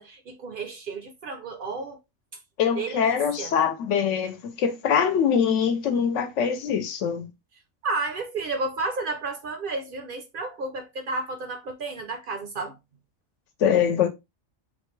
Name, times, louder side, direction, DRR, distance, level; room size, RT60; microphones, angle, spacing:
voice 1, 0.0-2.0 2.8-3.5 7.8-12.8, right 3 dB, 55° right, 0.6 m, -32 dB
voice 2, 2.6-7.3 13.6-14.1, left 7 dB, 75° left, 1.0 m, -23 dB
3.7 x 2.2 x 3.1 m
omnidirectional pair, 1.3 m